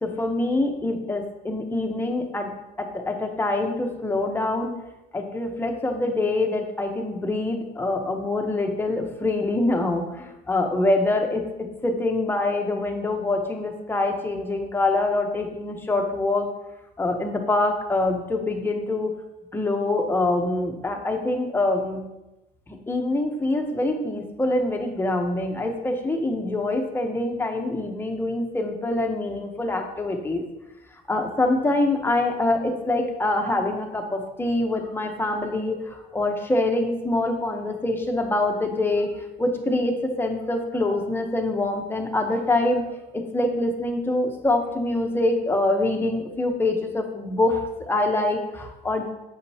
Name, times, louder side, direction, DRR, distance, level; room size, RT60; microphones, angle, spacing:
voice 1, 0.0-2.5 2.8-4.7 5.1-16.5 17.0-19.1 19.5-22.0 22.7-30.4 31.1-39.1 39.4-42.8 43.1-49.1, left 2 dB, 15° left, 3 dB, 0.9 m, -25 dB
7.8 x 5.1 x 2.8 m, 0.97 s
cardioid pair, 110°, 17 cm